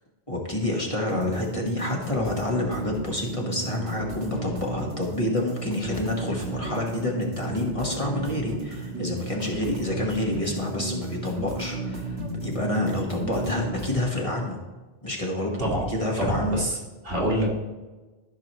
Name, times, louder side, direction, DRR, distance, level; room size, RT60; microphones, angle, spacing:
voice 1, 0.3-14.6 15.0-16.6, left 1 dB, 30° left, -1 dB, 1.5 m, -28 dB
sound 1, 1.1-14.0, right 3 dB, 90° right, 1.7 m, -33 dB
voice 2, 15.6-15.9 16.2-16.8 17.0-17.6, equal, 65° right, -3 dB, 2.1 m, -25 dB
13.5 x 6.0 x 3.0 m, 1.2 s
omnidirectional pair, 1.1 m